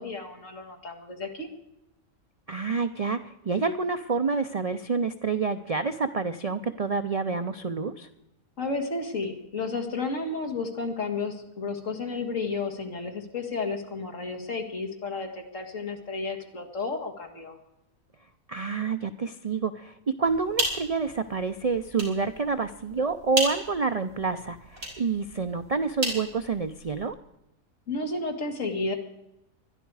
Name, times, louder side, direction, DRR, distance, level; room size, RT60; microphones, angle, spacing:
voice 1, 0.0-1.5 8.6-17.6 27.9-28.9, left 3 dB, 65° left, 3 dB, 2.4 m, -32 dB
voice 2, 2.5-8.1 18.5-27.2, right 4 dB, 50° right, 10 dB, 0.4 m, -28 dB
sound 1, 20.3-27.1, right 1 dB, 80° right, 5.1 m, -35 dB
21.0 x 12.5 x 4.8 m, 0.87 s
omnidirectional pair, 1.4 m